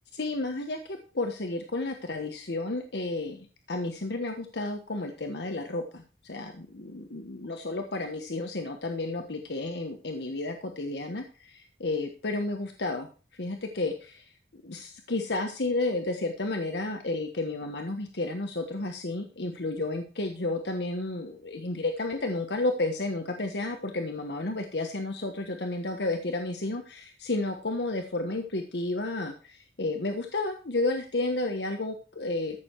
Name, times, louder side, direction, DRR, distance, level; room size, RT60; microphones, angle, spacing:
voice 1, 0.1-32.6, left 2 dB, 80° left, 4 dB, 1.3 m, -32 dB
14.5 x 6.7 x 4.6 m, 0.37 s
head